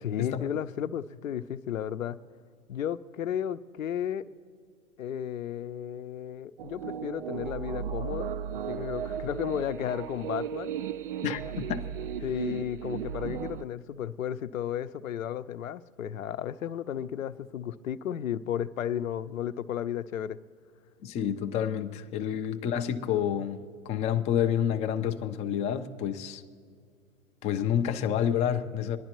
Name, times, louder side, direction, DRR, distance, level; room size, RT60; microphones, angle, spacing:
voice 1, 0.0-2.2 2.7-4.2 5.0-10.7 12.2-20.4 22.3-22.4, left 9 dB, 70° left, 0.8 m, -33 dB
sound 1, 6.6-13.7, right 8 dB, 40° right, 0.4 m, -35 dB
voice 2, 11.2-11.9 21.0-23.6 23.9-26.4 27.4-29.0, left 9 dB, 15° left, 0.5 m, -29 dB
27.0 x 11.0 x 3.0 m
figure-of-eight pair, 110°, 42 cm